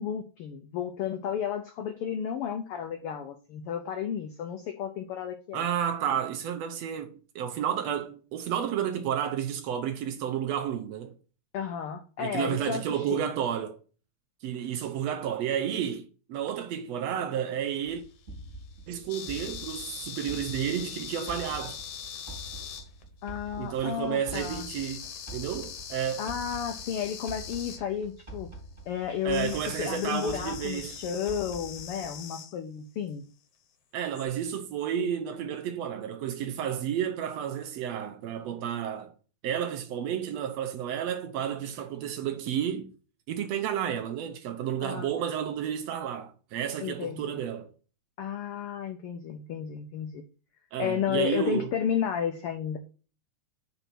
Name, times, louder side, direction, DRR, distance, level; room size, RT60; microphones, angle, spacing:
voice 1, 0.0-5.7 11.5-13.3 23.2-24.7 26.2-28.5 28.9-33.2 44.8-45.1 46.8-47.4 48.2-50.2 50.8-52.8, left 8 dB, 80° left, 1.2 m, -32 dB
voice 2, 5.5-11.1 12.2-13.8 14.4-18.0 18.9-21.8 23.6-26.3 29.3-31.0 33.9-39.1 39.4-42.9 43.3-47.7 50.7-51.7, right 9 dB, 75° right, 1.7 m, -31 dB
sound 1, 17.9-32.2, right 1 dB, 20° right, 2.5 m, -46 dB
sound 2, 18.0-23.2 24.3-27.8 29.3-32.6 34.1-34.3, left 8 dB, 65° left, 1.9 m, -42 dB
5.6 x 4.0 x 5.9 m
omnidirectional pair, 3.4 m